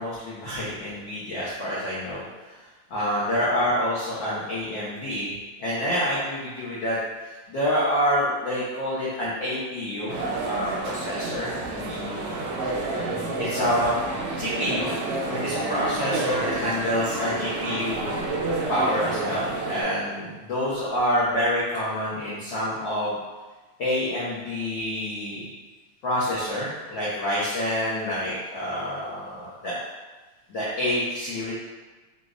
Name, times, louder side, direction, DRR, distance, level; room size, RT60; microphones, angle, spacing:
voice 1, 0.0-2.6 2.9-5.3 5.6-7.0 7.5-12.3 13.4-14.0 14.4-15.0 15.2-23.2 23.8-25.5 26.0-29.8 30.5-31.5, equal, 80° left, -9 dB, 1.0 m, -27 dB
sound 1, 10.1-19.8, right 3 dB, 75° right, 1.3 m, -30 dB
6.6 x 2.4 x 2.5 m, 1.3 s
omnidirectional pair, 3.3 m